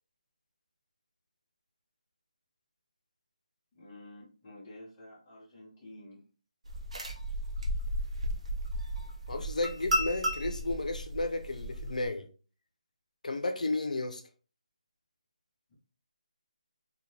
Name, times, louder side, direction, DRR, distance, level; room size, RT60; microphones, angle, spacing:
voice 1, 3.7-6.2, left 1 dB, 10° left, 0.7 m, -50 dB
sound 1, 6.6-12.1, equal, 55° right, 0.6 m, -34 dB
voice 2, 9.3-12.3 13.2-14.2, left 2 dB, 75° left, 0.5 m, -33 dB
3.5 x 2.1 x 2.8 m
hypercardioid pair, 175°, 4 cm